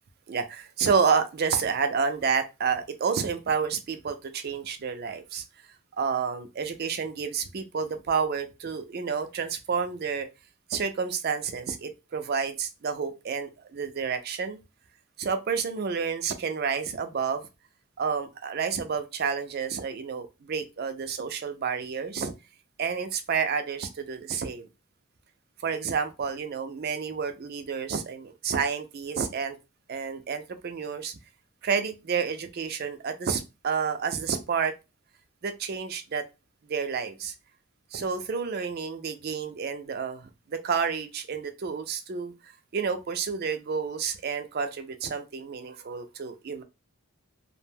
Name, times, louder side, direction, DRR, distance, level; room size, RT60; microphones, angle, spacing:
voice 1, 0.3-5.4 6.0-10.3 10.7-14.6 15.2-17.5 18.0-22.3 22.8-24.7 25.6-29.6 29.9-31.2 31.6-34.7 35.4-36.3 36.7-37.3 37.9-46.6, right 6 dB, 45° right, 0.4 m, -30 dB
2.4 x 2.1 x 3.3 m
head